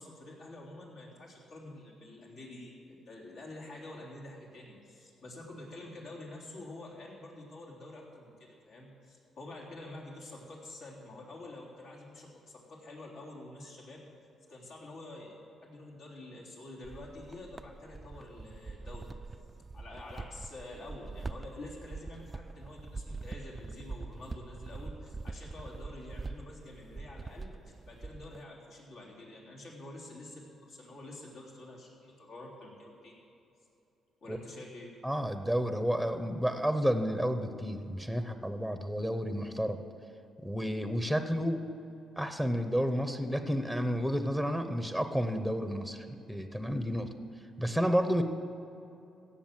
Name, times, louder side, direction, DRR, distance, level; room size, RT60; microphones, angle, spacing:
voice 1, 0.0-14.1 14.5-15.4 15.6-19.1 19.7-33.1 34.2-34.9, left 2 dB, 75° left, -4 dB, 3.5 m, -48 dB
sound 1, 16.8-28.4, right 3 dB, 25° right, 0.4 m, -44 dB
voice 2, 35.0-39.8 40.4-41.6 42.2-47.1 47.6-48.2, equal, 5° left, 8 dB, 0.8 m, -31 dB
16.5 x 7.1 x 7.5 m, 2.8 s
cardioid pair, 90°, 0 cm